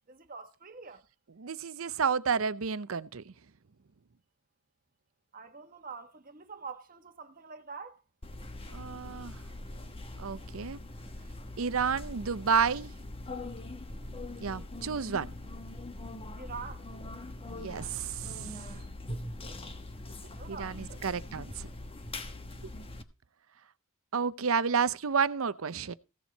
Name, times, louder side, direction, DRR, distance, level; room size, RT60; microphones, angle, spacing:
voice 1, 0.1-1.0 5.3-8.0 16.4-16.9 20.2-21.0, right 5 dB, 40° right, 1.4 m, -45 dB
voice 2, 1.4-3.3 8.7-9.4 10.2-10.8 11.6-12.9 14.4-15.3 17.5-18.8 20.5-21.7 24.1-25.9, right 6 dB, 80° right, 0.7 m, -31 dB
sound 1, 8.2-23.0, left 1 dB, 25° left, 1.2 m, -42 dB
16.5 x 7.2 x 4.1 m
head